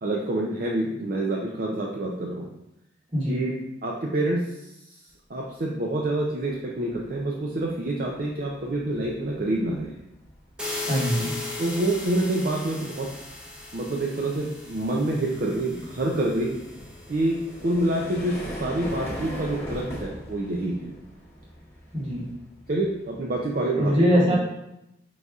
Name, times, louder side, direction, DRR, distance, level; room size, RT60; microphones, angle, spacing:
voice 1, 0.0-2.5 3.3-3.5 3.8-4.6 5.3-9.9 11.6-13.1 13.7-16.6 17.1-20.9 22.7-24.4, right 1 dB, 50° right, -1 dB, 0.5 m, -27 dB
sound 1, 6.9-23.6, equal, 15° left, 1.1 m, -41 dB
sound 2, 10.6-17.4, left 2 dB, 5° right, 0.7 m, -37 dB
voice 2, 10.8-11.3 21.9-22.2 23.8-24.4, equal, 30° right, -5 dB, 1.1 m, -22 dB
4.7 x 4.0 x 2.4 m, 0.87 s
head